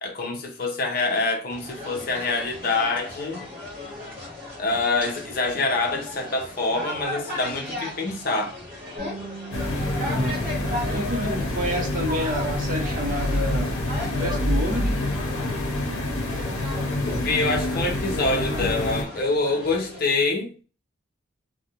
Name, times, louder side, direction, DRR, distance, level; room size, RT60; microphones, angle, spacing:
voice 1, 0.0-3.4 4.6-8.6 17.1-20.5, left 3 dB, 45° left, 0.5 m, -25 dB
sound 1, 1.5-20.0, left 2 dB, 5° right, 1.1 m, -36 dB
Bass guitar, 9.0-13.7 14.0-15.2, right 4 dB, 65° right, 0.9 m, -44 dB
sound 2, 9.5-19.0, left 1 dB, 90° left, 0.6 m, -27 dB
voice 2, 10.0-13.8 14.1-15.0, left 1 dB, 40° right, 0.6 m, -29 dB
2.4 x 2.1 x 2.9 m
head